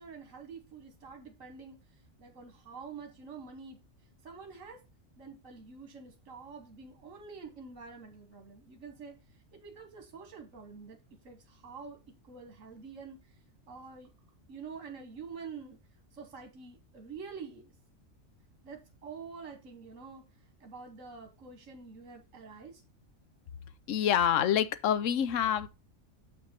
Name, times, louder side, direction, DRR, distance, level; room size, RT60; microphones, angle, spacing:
voice 1, 0.0-3.8 4.2-4.8 5.2-11.0 11.2-13.4 13.7-14.1 14.5-15.8 16.1-17.7 18.6-22.8, right 5 dB, 75° right, 1.7 m, -47 dB
voice 2, 23.9-25.7, left 9 dB, 75° left, 1.1 m, -27 dB
7.5 x 6.2 x 4.3 m
omnidirectional pair, 1.4 m